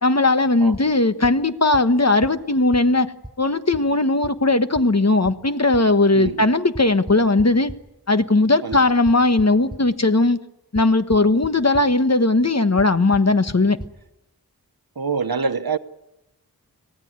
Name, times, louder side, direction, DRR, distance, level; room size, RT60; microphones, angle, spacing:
voice 1, 0.0-3.1 3.4-7.7 8.1-10.4 10.7-13.8, left 2 dB, 45° left, 1.3 m, -18 dB
sound 1, 0.7-0.8 1.2-1.3 1.7-1.8 2.2-2.3 2.7-2.8 3.2-3.3 3.7-3.8 4.2-4.3 4.7-4.8 5.2-5.3 5.7-5.8 6.2-6.3 6.7-7.7 8.7-9.8 10.7-10.8 11.1-11.5 11.7-11.8 12.8-12.9 13.1-13.2 13.5-13.6 13.8-13.9, right 1 dB, 10° right, 6.5 m, -34 dB
voice 2, 6.1-6.5 8.6-8.8 15.0-15.8, right 5 dB, 70° right, 1.1 m, -25 dB
25.0 x 17.0 x 9.5 m
wide cardioid pair, 50°, 38 cm